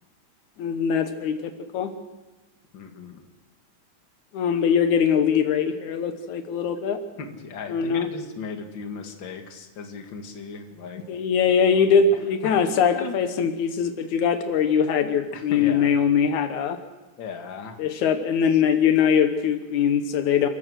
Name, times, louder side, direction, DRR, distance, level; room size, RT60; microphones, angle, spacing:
voice 1, 0.6-1.9 4.3-7.0 7.7-8.1 11.1-16.8 17.8-20.5, left 7 dB, 80° left, 8 dB, 2.5 m, -22 dB
voice 2, 2.7-3.2 7.2-11.0 12.4-12.5 12.9-13.2 15.3-15.9 17.2-17.8 18.5-18.6, left 5 dB, 45° left, 4 dB, 2.4 m, -37 dB
29.0 x 15.0 x 6.4 m, 1.2 s
omnidirectional pair, 3.4 m